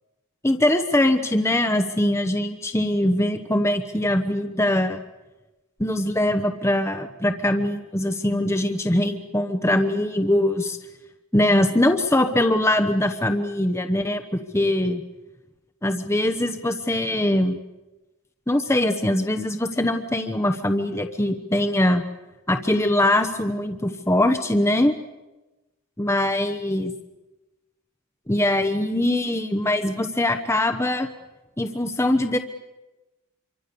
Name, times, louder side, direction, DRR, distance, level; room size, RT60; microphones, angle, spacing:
voice 1, 0.4-5.0 5.8-10.8 11.3-14.2 14.5-15.0 15.8-17.6 18.5-22.0 22.5-24.9 26.0-26.9 28.3-31.1 31.6-32.4, left 1 dB, 10° left, 7 dB, 1.0 m, -22 dB
27.0 x 24.5 x 7.0 m, 1.1 s
head